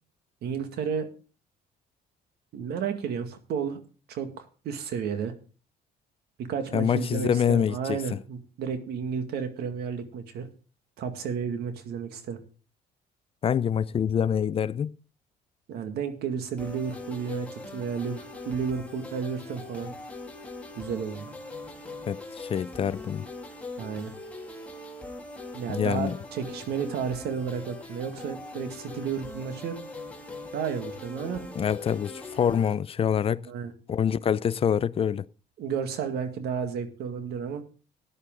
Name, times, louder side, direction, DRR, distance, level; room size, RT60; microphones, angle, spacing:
voice 1, 0.4-1.1 2.5-3.8 4.1-5.3 6.4-10.5 11.0-12.4 15.7-20.0 20.8-21.3 23.8-24.1 25.5-29.8 30.5-31.4 33.4-33.7 35.6-37.6, right 7 dB, 70° right, 2.0 m, -32 dB
voice 2, 6.7-8.2 13.4-15.0 22.1-23.3 25.7-26.2 31.6-33.5 33.9-35.2, left 8 dB, 35° left, 0.5 m, -26 dB
sound 1, 16.6-32.7, left 2 dB, 10° left, 2.5 m, -41 dB
14.0 x 10.0 x 3.8 m
cardioid pair, 110°, 17 cm